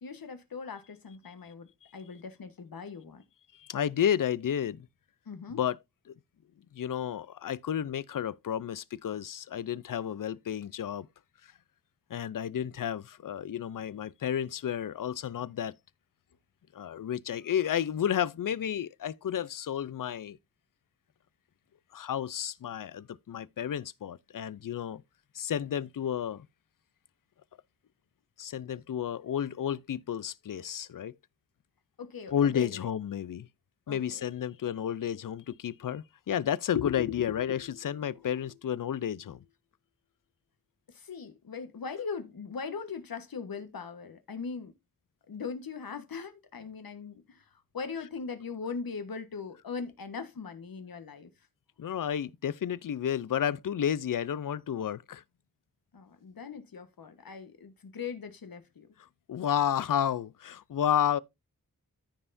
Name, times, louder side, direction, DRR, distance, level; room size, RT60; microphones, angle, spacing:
voice 1, 0.0-3.2 5.3-5.6 32.0-32.9 33.9-34.2 40.9-44.7 45.3-51.3 55.9-58.9, left 5 dB, 80° left, 1.3 m, -40 dB
voice 2, 3.5-4.9 5.5-5.8 6.1-6.2 6.7-11.1 12.1-15.7 16.7-20.4 21.9-25.0 25.3-26.5 28.4-31.1 32.3-33.5 33.9-39.4 51.8-55.2 59.3-61.2, left 9 dB, 65° left, 0.5 m, -31 dB
14.0 x 5.6 x 2.6 m
wide cardioid pair, 110°, 35 cm